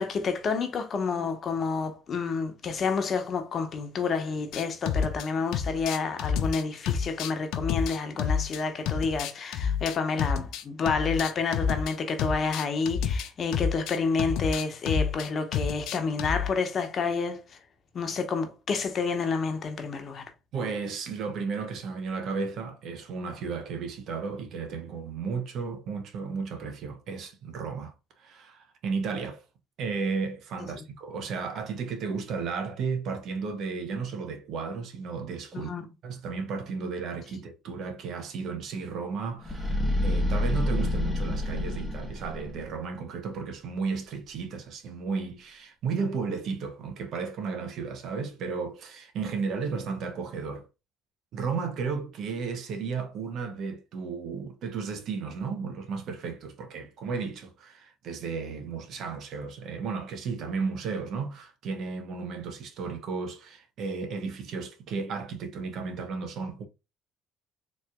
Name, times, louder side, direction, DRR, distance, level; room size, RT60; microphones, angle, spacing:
voice 1, 0.0-17.4 17.9-20.2 35.5-35.9, left 5 dB, 45° left, 1.0 m, -29 dB
sound 1, 4.5-5.2 5.5-8.6 8.9-11.9 12.2-16.5, left 7 dB, 75° left, 0.5 m, -29 dB
voice 2, 20.5-29.4 29.8-35.7 36.0-50.7 51.3-66.7, right 5 dB, 65° right, 0.9 m, -34 dB
sound 2, 39.4-42.7, left 1 dB, ahead, 1.2 m, -28 dB
4.0 x 3.2 x 2.3 m
supercardioid pair, 80°, 0 cm